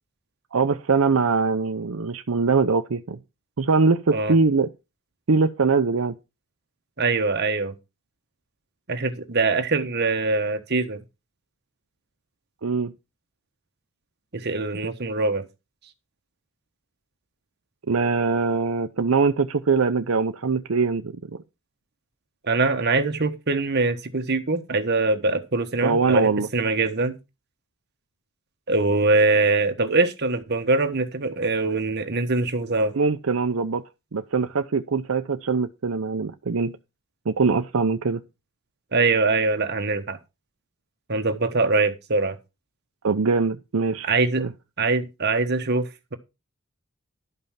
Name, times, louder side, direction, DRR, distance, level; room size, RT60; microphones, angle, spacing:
voice 1, 0.5-3.2 3.6-4.7 5.3-6.1 12.6-12.9 17.9-21.4 25.8-26.5 32.9-33.8 34.1-36.8 37.3-38.2 43.0-44.1 44.4-44.5, right 4 dB, 75° right, 0.7 m, -22 dB
voice 2, 7.0-7.7 8.9-11.0 14.3-15.5 22.4-27.1 28.7-32.9 38.9-40.2 41.1-42.4 44.1-44.4 44.8-46.2, right 3 dB, 50° right, 1.3 m, -23 dB
12.0 x 5.5 x 5.7 m
head